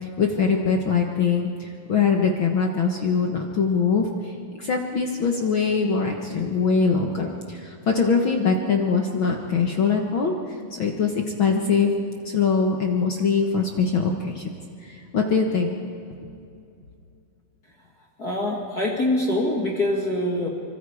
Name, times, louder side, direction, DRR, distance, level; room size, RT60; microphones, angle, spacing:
voice 1, 0.2-4.1 4.6-10.3 10.7-11.9 12.2-14.5 14.9-15.8, left 5 dB, 60° left, 2 dB, 1.3 m, -22 dB
voice 2, 18.2-20.5, left 1 dB, 30° left, -2 dB, 2.1 m, -24 dB
26.0 x 25.0 x 4.9 m, 2.6 s
omnidirectional pair, 4.1 m